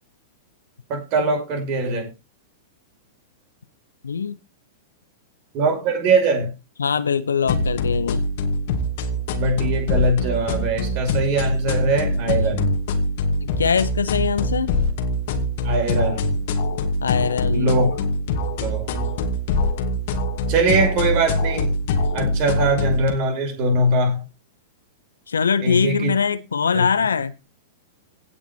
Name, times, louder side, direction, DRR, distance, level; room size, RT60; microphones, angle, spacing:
voice 1, 0.9-2.1 5.5-6.5 9.3-12.7 15.6-16.4 17.5-18.0 18.6-19.0 20.5-21.7 22.1-24.2 25.6-26.1 26.7-26.8, right 2 dB, 40° right, 2 dB, 5.7 m, -22 dB
voice 2, 4.0-4.4 6.8-8.2 12.1-12.5 13.4-14.7 17.0-17.7 25.3-27.3, left 6 dB, 75° left, 13 dB, 1.1 m, -22 dB
sound 1, 7.4-23.1, left 1 dB, 50° left, 2.4 m, -24 dB
17.0 x 5.8 x 4.4 m, 0.28 s
figure-of-eight pair, 100°, 0 cm